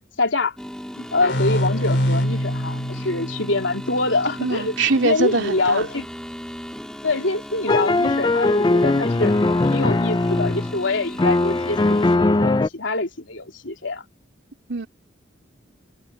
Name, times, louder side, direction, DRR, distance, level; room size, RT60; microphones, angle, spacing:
voice 1, 0.2-0.5 0.9-4.7 5.0-6.1 7.0-9.3 9.7-14.0, left 2 dB, 80° left, 3.3 m, -25 dB
sound 1, 0.6-12.2, equal, 5° left, 2.2 m, -36 dB
sound 2, 1.2-4.7, equal, 65° left, 3.1 m, -25 dB
voice 2, 4.4-5.9 14.7-14.9, right 3 dB, 75° right, 2.8 m, -22 dB
sound 3, 7.7-10.8 11.2-12.7, left 2 dB, 20° left, 0.3 m, -19 dB
head